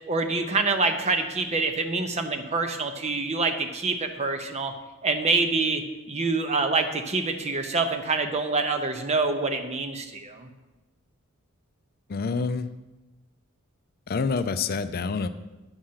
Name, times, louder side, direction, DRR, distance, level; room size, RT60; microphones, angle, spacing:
voice 1, 0.1-4.7 5.0-10.5, right 3 dB, 30° right, 6 dB, 0.7 m, -26 dB
voice 2, 12.1-12.7 14.1-15.3, left 4 dB, 45° left, 12 dB, 0.4 m, -27 dB
8.9 x 6.4 x 5.6 m, 1.1 s
head